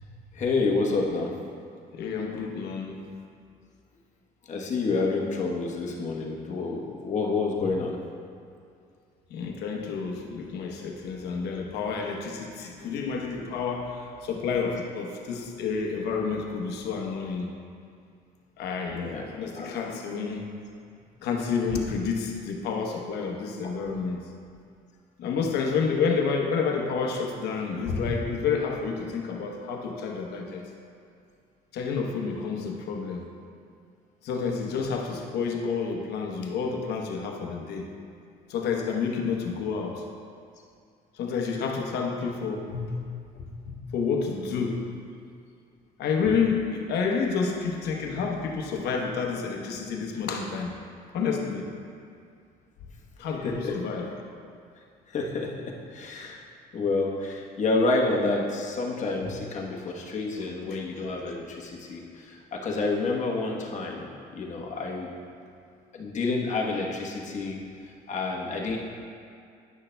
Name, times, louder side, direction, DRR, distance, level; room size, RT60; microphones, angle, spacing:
voice 1, 0.3-1.3 4.5-8.0 18.9-19.7 23.6-23.7 53.4-53.8 55.1-55.5 55.9-56.4 56.7-65.1 65.9-67.6 68.1-68.8, left 3 dB, 45° left, -1 dB, 1.1 m, -29 dB
voice 2, 1.9-3.1 9.3-17.5 18.6-20.5 21.2-24.2 25.2-30.6 31.7-33.3 34.2-37.9 38.5-40.0 41.1-43.0 43.6-44.9 46.0-50.8 51.1-51.7 53.2-54.1 60.7-60.8, left 5 dB, 75° left, 1 dB, 0.9 m, -29 dB
10.5 x 6.4 x 2.2 m, 2.4 s
cardioid pair, 110°, 17 cm